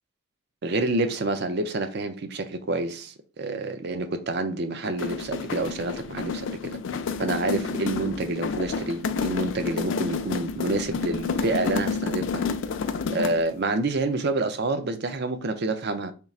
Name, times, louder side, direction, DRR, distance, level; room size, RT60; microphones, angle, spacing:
voice 1, 0.6-6.8 7.2-12.5 13.1-16.1, right 2 dB, 50° right, 0.5 m, -28 dB
sound 1, 4.8-13.5, left 5 dB, 60° left, 0.3 m, -30 dB
3.6 x 2.4 x 4.1 m
head